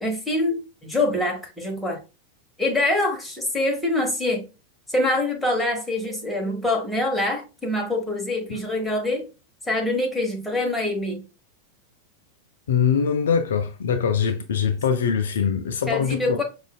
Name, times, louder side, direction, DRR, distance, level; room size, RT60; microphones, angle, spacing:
voice 1, 0.0-2.0 2.6-4.4 4.9-9.3 9.7-11.2 15.9-16.4, left 2 dB, 5° left, 1.0 m, -25 dB
voice 2, 12.7-16.4, left 7 dB, 60° left, 0.3 m, -23 dB
4.9 x 2.3 x 2.3 m
figure-of-eight pair, 90°, 0 cm